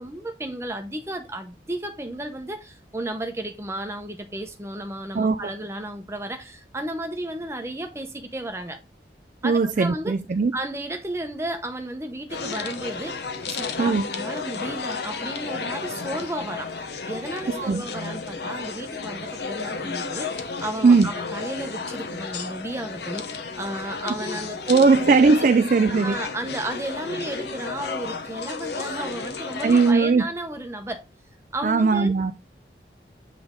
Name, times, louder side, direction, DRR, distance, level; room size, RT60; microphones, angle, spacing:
voice 1, 0.0-8.8 9.4-10.2 10.5-25.1 25.4-25.5 25.9-31.0 31.5-32.1, right 1 dB, 15° right, 0.8 m, -33 dB
voice 2, 5.1-5.5 9.4-10.5 13.8-14.0 17.6-17.8 20.8-21.1 24.7-26.2 29.6-30.2 31.6-32.3, right 4 dB, 45° right, 0.3 m, -18 dB
sound 1, 12.3-29.9, left 4 dB, 70° left, 0.9 m, -33 dB
7.9 x 3.4 x 3.6 m
head